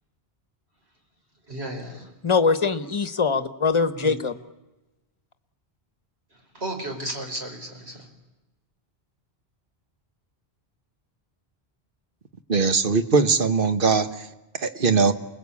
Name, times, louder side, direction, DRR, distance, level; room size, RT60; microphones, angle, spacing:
voice 1, 1.5-2.1 4.0-4.2 6.5-8.1, right 1 dB, 80° right, 2 dB, 4.8 m, -34 dB
voice 2, 2.2-4.3, left 5 dB, 30° left, 12 dB, 1.1 m, -22 dB
voice 3, 12.5-14.3 14.6-15.1, right 4 dB, 55° right, 9 dB, 1.5 m, -20 dB
29.0 x 20.5 x 8.6 m, 1.0 s
omnidirectional pair, 1.1 m